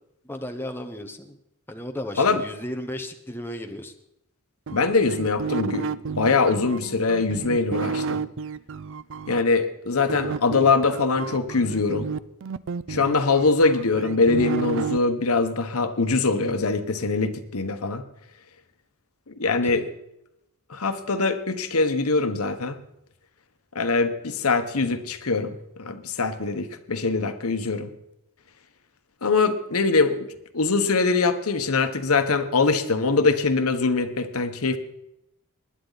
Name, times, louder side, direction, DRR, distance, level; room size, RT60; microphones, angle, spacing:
voice 1, 0.2-1.4 1.7-3.9 19.4-19.9, left 1 dB, 10° left, 5 dB, 0.9 m, -35 dB
voice 2, 4.7-5.9 6.2-8.2 9.3-12.1 12.9-18.0 19.4-19.8 20.7-22.8 23.7-27.9 29.2-30.3 30.5-34.8, left 3 dB, 85° left, 9 dB, 1.1 m, -23 dB
sound 1, 4.7-9.4 10.1-15.0, right 5 dB, 60° right, 0.4 m, -31 dB
20.0 x 10.5 x 4.0 m, 0.83 s
head